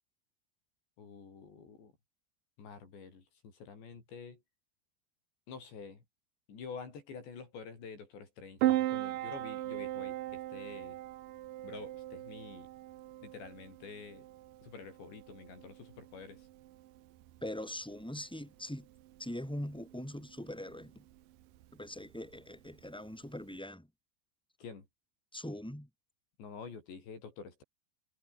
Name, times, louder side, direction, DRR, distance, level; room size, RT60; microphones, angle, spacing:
voice 1, 1.0-1.9 2.6-4.4 5.5-6.0 6.5-11.0 11.6-12.7 13.2-14.3 14.6-16.5 24.6-24.9 26.4-27.6, left 5 dB, 85° left, 8.5 m, -48 dB
Piano, 8.6-23.6, right 14 dB, 70° right, 2.2 m, -39 dB
voice 2, 17.4-18.9 19.2-21.0 21.7-23.9 25.3-25.9, left 1 dB, ahead, 1.7 m, -42 dB
omnidirectional pair, 4.9 m